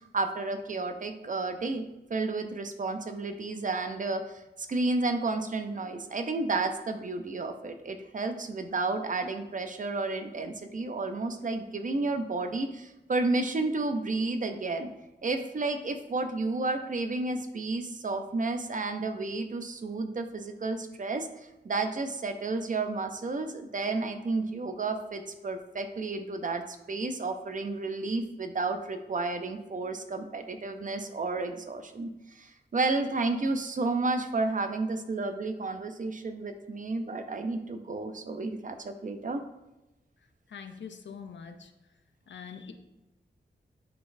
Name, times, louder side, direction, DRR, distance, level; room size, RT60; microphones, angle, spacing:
voice 1, 0.0-1.8 2.1-14.9 15.2-21.3 21.6-32.1 32.4-39.4, right 3 dB, 45° right, 7 dB, 0.5 m, -31 dB
voice 2, 40.5-41.7 42.3-42.7, left 6 dB, 85° left, 6 dB, 0.6 m, -43 dB
10.0 x 3.9 x 2.6 m, 0.96 s
wide cardioid pair, 140°, 18 cm